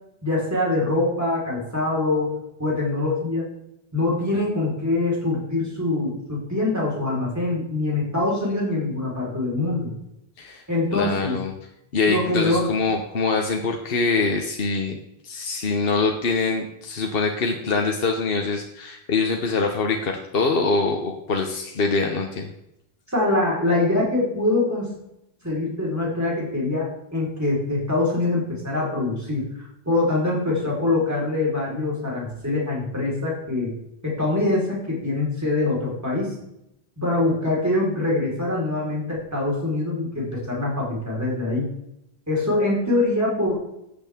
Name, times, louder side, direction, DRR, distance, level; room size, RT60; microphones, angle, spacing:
voice 1, 0.2-3.4 3.9-9.9 10.7-11.4 12.1-12.7 23.1-24.9 25.4-29.5 29.9-33.7 34.0-36.3 37.0-41.7 42.3-43.5, left 2 dB, 15° right, -5 dB, 4.3 m, -24 dB
voice 2, 10.9-11.5 11.9-15.0 15.2-22.5, left 4 dB, 65° left, 2 dB, 1.2 m, -24 dB
14.0 x 8.4 x 3.6 m, 0.82 s
omnidirectional pair, 1.1 m